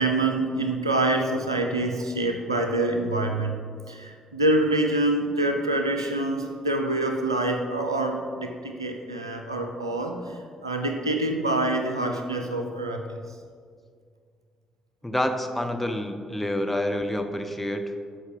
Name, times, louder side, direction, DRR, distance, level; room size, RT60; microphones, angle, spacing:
voice 1, 0.0-3.6 3.9-13.2, right 2 dB, 90° right, 4 dB, 0.5 m, -26 dB
voice 2, 15.0-17.9, left 1 dB, 5° left, 5 dB, 1.1 m, -28 dB
12.5 x 4.9 x 5.2 m, 2.1 s
figure-of-eight pair, 40°, 2 cm